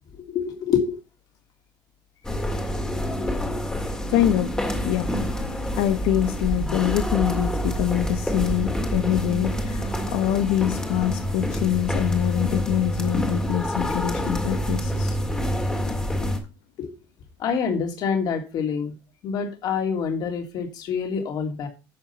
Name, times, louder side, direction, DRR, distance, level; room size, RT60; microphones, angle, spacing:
voice 1, 0.3-1.0 16.8-16.9 17.4-18.9 19.2-21.7, left 6 dB, 50° left, 4 dB, 3.0 m, -26 dB
sound 1, 2.2-16.4, equal, 10° left, 1.9 m, -27 dB
voice 2, 4.1-4.5 4.8-5.1 5.7-15.2, left 12 dB, 90° left, 8 dB, 1.2 m, -24 dB
11.5 x 7.8 x 4.3 m, 0.29 s
cardioid pair, 170°, 9 cm